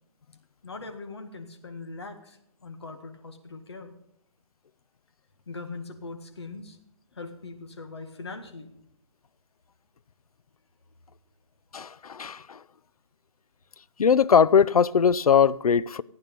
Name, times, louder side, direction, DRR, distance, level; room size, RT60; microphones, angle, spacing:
voice 1, 0.6-3.9 5.5-6.8 7.1-8.7, left 3 dB, 45° left, 1.7 m, -41 dB
voice 2, 11.7-12.6 14.0-16.0, left 7 dB, 75° left, 0.5 m, -20 dB
15.0 x 9.6 x 5.3 m
hypercardioid pair, 180°, 19 cm